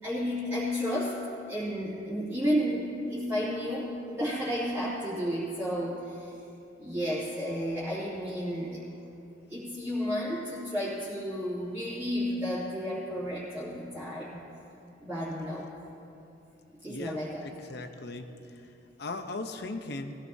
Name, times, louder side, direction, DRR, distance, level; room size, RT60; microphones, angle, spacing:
voice 1, 0.0-1.2 1.5-6.3 6.8-8.8 9.5-14.4 15.0-15.7 16.8-17.5, equal, 10° right, -12 dB, 2.7 m, -32 dB
voice 2, 16.8-18.3 19.0-20.2, left 2 dB, 60° left, 7 dB, 0.8 m, -38 dB
20.5 x 15.5 x 2.8 m, 2.8 s
head